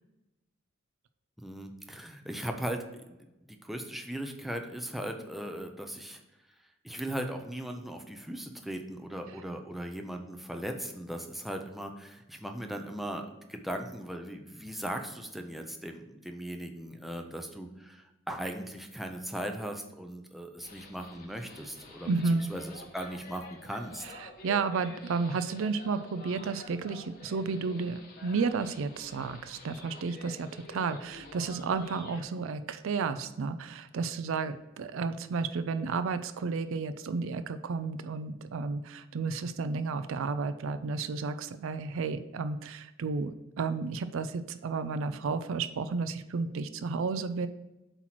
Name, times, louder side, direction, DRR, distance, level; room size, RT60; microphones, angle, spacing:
voice 1, 1.4-6.2 6.8-24.0, right 1 dB, ahead, 3 dB, 0.6 m, -38 dB
sound 1, 20.6-32.2, left 2 dB, 45° left, 1.0 m, -49 dB
voice 2, 22.0-22.5 24.0-47.5, right 4 dB, 70° right, 11 dB, 0.4 m, -32 dB
7.9 x 3.1 x 5.8 m, 0.97 s
head